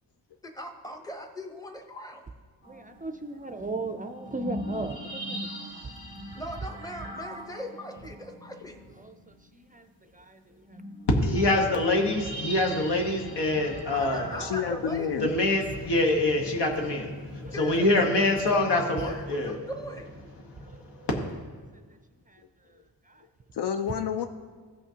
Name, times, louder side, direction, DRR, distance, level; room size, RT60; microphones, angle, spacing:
voice 1, 0.5-2.2 6.3-8.8 13.9-15.2 17.5-20.1, equal, 10° left, 3 dB, 0.8 m, -40 dB
sound 1, 2.6-9.7 10.2-10.3 10.5-15.5 17.7-18.6, equal, 30° left, 2.1 m, -42 dB
voice 2, 2.7-5.4 9.0-9.1 9.7-9.8, right 2 dB, 20° right, 7 dB, 0.4 m, -35 dB
voice 3, 11.1-14.3 15.2-19.6 20.6-20.8 21.0-21.1, left 2 dB, 90° left, 1 dB, 1.3 m, -25 dB
voice 4, 14.4-15.3 17.4-17.5 23.5-24.2, left 8 dB, 75° left, 7 dB, 0.5 m, -29 dB
15.5 x 5.8 x 2.8 m, 1.5 s
wide cardioid pair, 110°, 41 cm